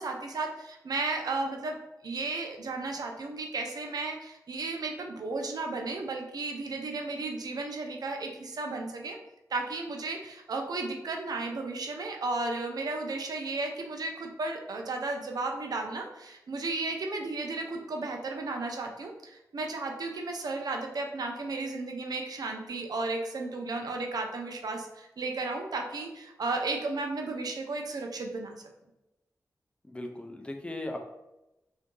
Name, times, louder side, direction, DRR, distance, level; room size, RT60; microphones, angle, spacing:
voice 1, 0.0-1.8 2.0-9.2 9.5-28.6, right 3 dB, 80° right, 3 dB, 0.6 m, -34 dB
voice 2, 29.8-31.0, left 1 dB, 15° left, 3 dB, 0.6 m, -37 dB
3.7 x 2.7 x 3.7 m, 0.94 s
cardioid pair, 60°, 7 cm